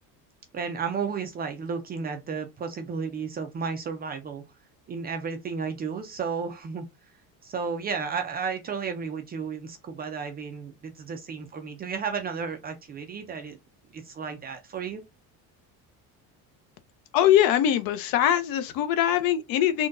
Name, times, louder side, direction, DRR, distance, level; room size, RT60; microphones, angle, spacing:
voice 1, 0.5-4.4 4.9-6.9 7.4-13.6 13.9-15.0, right 5 dB, 25° right, 0.3 m, -33 dB
voice 2, 17.1-19.9, left 11 dB, 60° left, 0.6 m, -22 dB
3.7 x 2.2 x 2.5 m
cardioid pair, 150°, 39 cm